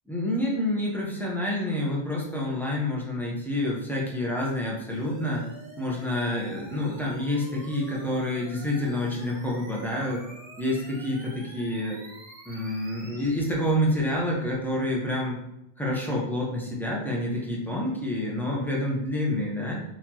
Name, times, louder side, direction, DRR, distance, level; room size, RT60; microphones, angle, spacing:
voice 1, 0.1-5.4 5.8-10.2 10.6-12.0 12.5-15.4 15.8-19.8, left 1 dB, ahead, -4 dB, 0.9 m, -28 dB
sound 1, 4.9-13.3, right 1 dB, 75° right, 1.5 m, -47 dB
6.1 x 2.9 x 3.0 m, 0.84 s
omnidirectional pair, 1.1 m